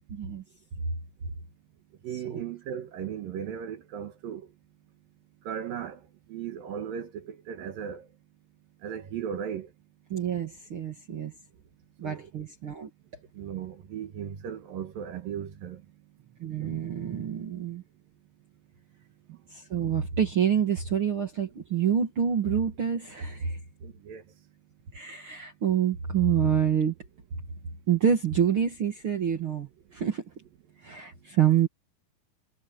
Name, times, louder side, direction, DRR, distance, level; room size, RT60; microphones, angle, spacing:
voice 1, 0.1-0.4 2.3-2.4 10.1-11.3 12.0-12.9 16.4-17.8 19.5-23.6 24.9-26.9 27.9-30.2 30.8-31.7, right 8 dB, 85° right, 1.1 m, -27 dB
voice 2, 2.0-4.5 5.4-6.0 6.3-8.1 8.8-9.7 12.0-12.3 13.4-15.8 19.3-19.4 23.8-24.2, right 8 dB, 65° right, 2.6 m, -36 dB
omnidirectional pair, 5.4 m